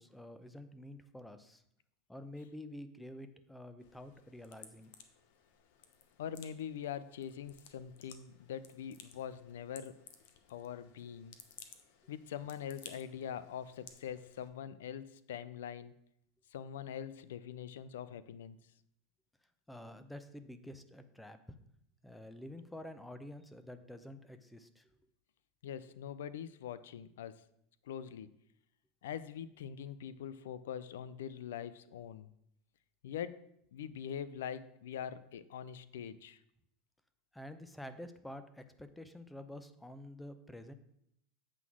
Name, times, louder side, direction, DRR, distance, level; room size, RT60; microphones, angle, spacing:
voice 1, 0.0-1.6 2.1-4.9 19.7-21.4 22.0-24.9 37.3-40.7, left 1 dB, 5° left, 10 dB, 0.7 m, -49 dB
sound 1, 3.8-14.5, left 8 dB, 70° left, 0.9 m, -58 dB
voice 2, 6.2-10.0 10.5-11.4 12.1-15.9 16.5-18.6 25.6-27.4 27.8-28.3 29.0-32.3 33.0-33.4 33.7-36.4, left 9 dB, 85° left, 16 dB, 0.4 m, -43 dB
8.3 x 3.8 x 6.1 m, 0.74 s
supercardioid pair, 110°, 0 cm